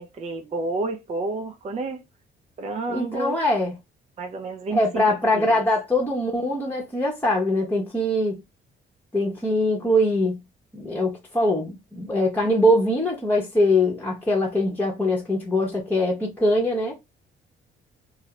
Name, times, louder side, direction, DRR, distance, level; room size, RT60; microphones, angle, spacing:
voice 1, 0.0-2.0 2.6-3.4 4.2-5.6, right 3 dB, 35° right, 0.4 m, -30 dB
voice 2, 2.9-3.7 4.7-8.4 9.1-10.4 10.7-16.9, left 1 dB, 10° left, 0.8 m, -22 dB
2.3 x 2.0 x 2.8 m
cardioid pair, 90°, 20 cm